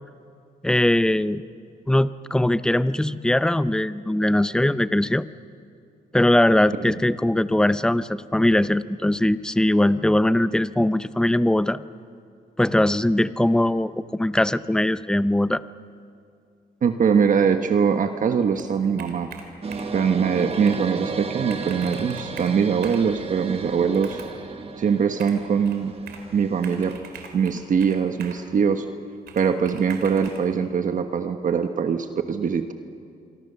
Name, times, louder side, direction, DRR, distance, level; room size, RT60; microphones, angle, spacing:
voice 1, 0.6-1.4 1.9-5.3 6.1-11.8 12.6-15.6, left 1 dB, 5° left, 14 dB, 0.6 m, -21 dB
voice 2, 16.8-19.3 19.9-24.2 24.8-25.9 26.3-26.9 27.3-28.9 29.3-32.7, right 6 dB, 55° right, 7 dB, 1.3 m, -22 dB
Computer keyboard, 18.5-20.0 20.5-20.8 21.2-21.3 21.5-23.1 23.9-24.4 25.2-26.3 26.6-28.5 29.3-30.4, right 6 dB, 85° right, 3.4 m, -43 dB
sound 1, 19.6-27.0, right 4 dB, 35° right, 1.6 m, -34 dB
27.0 x 24.5 x 6.9 m, 2.4 s
cardioid pair, 105°, 16 cm